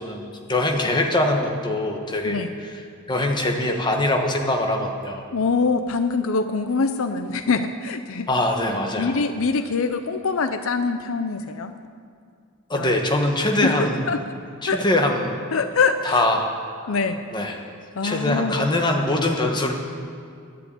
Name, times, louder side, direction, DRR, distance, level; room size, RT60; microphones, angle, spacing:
voice 1, 0.0-2.7 3.1-5.2 8.3-9.2 12.7-14.1 14.6-15.4 16.0-16.5 16.8-16.9 17.3-17.6 18.0-19.7, left 1 dB, 20° left, 2 dB, 1.3 m, -23 dB
voice 2, 5.3-8.3 9.0-11.7 12.7-13.0 13.6-14.2 14.7-14.8 15.5-16.2 16.9-17.2 17.9-18.6, left 4 dB, 70° left, 9 dB, 0.6 m, -24 dB
11.0 x 10.5 x 8.6 m, 2.3 s
head